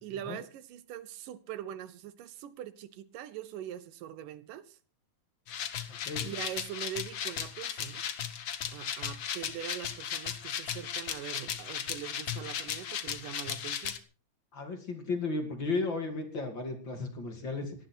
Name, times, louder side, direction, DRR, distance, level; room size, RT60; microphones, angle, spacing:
voice 1, 0.0-4.8 6.2-8.0 8.7-14.0, right 11 dB, 80° right, 2.5 m, -42 dB
sound 1, 5.5-14.0, left 9 dB, 65° left, 1.1 m, -36 dB
voice 2, 5.9-6.3 14.5-17.7, left 3 dB, 35° left, 3.0 m, -34 dB
18.5 x 13.0 x 4.5 m
omnidirectional pair, 3.8 m